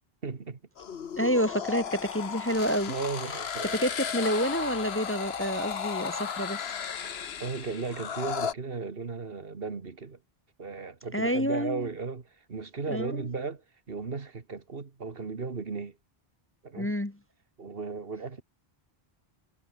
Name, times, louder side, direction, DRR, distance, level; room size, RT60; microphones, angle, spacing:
voice 1, 0.2-0.6 2.9-3.9 7.4-10.2 10.6-16.0 16.6-17.0 17.6-18.4, right 4 dB, 65° right, 1.8 m, -36 dB
sound 1, 0.8-8.5, left 7 dB, 80° left, 1.3 m, -35 dB
voice 2, 1.2-2.9 3.7-6.6 11.1-11.9 12.9-13.3 16.8-17.2, equal, 15° left, 1.0 m, -28 dB
omnidirectional pair, 1.0 m